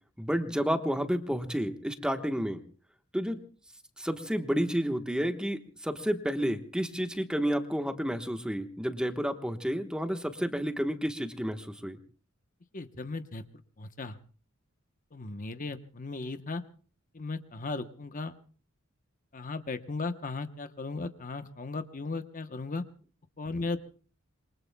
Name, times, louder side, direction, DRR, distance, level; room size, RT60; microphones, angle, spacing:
voice 1, 0.2-2.6 3.1-3.4 4.0-12.0, equal, 5° right, 7 dB, 1.2 m, -30 dB
voice 2, 12.7-13.4 13.8-14.2 15.1-16.6 17.1-18.3 19.3-22.8 23.4-23.8, left 3 dB, 40° left, 9 dB, 0.9 m, -36 dB
27.0 x 23.5 x 2.2 m, 0.41 s
head